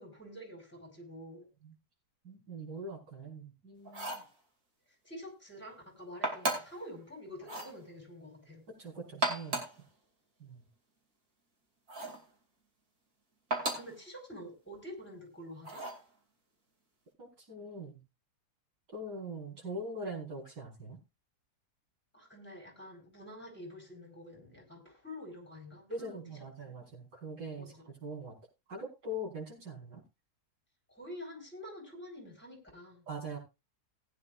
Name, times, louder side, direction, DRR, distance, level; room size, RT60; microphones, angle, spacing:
voice 1, 0.0-1.5 5.0-8.6 13.6-15.8 22.1-26.7 27.6-27.8 30.9-33.1, equal, 5° left, 2 dB, 4.2 m, -48 dB
voice 2, 2.2-4.2 8.7-9.6 10.4-10.6 17.2-18.0 18.9-21.0 25.9-28.4 28.7-30.0 33.1-33.4, right 1 dB, 90° right, -3 dB, 5.6 m, -42 dB
sound 1, 3.9-4.3 6.2-6.8 7.4-7.8 9.1-9.8 11.9-12.2 13.5-14.0 15.6-16.0, right 2 dB, 65° right, 3.2 m, -35 dB
19.0 x 9.5 x 2.5 m, 0.27 s
omnidirectional pair, 1.7 m